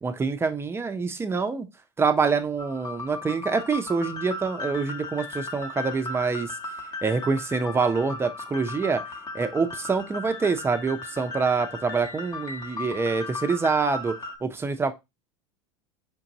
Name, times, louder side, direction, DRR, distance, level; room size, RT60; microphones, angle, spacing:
voice 1, 0.0-1.7 2.0-6.5 7.0-9.0 9.3-14.1 14.4-14.9, right 4 dB, 15° right, 0.5 m, -26 dB
sound 1, 2.6-14.4, left 3 dB, 30° left, 1.0 m, -37 dB
5.1 x 2.5 x 2.8 m
hypercardioid pair, 90°, 15 cm